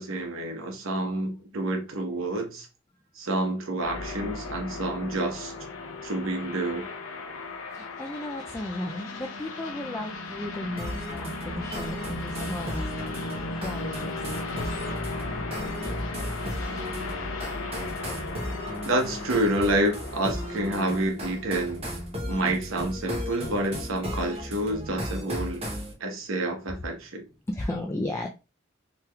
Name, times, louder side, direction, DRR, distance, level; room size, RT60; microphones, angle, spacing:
voice 1, 0.0-2.7 3.2-5.5 6.0-6.9 18.8-21.8 22.3-25.7 26.0-27.2, right 1 dB, 85° right, 0.9 m, -28 dB
sound 1, 3.8-21.1, left 3 dB, 85° left, 0.7 m, -36 dB
voice 2, 7.7-12.9 13.6-14.2 27.5-28.3, left 1 dB, 15° left, 0.3 m, -34 dB
sound 2, 10.8-25.9, equal, 30° right, 0.8 m, -36 dB
3.3 x 2.9 x 2.3 m
head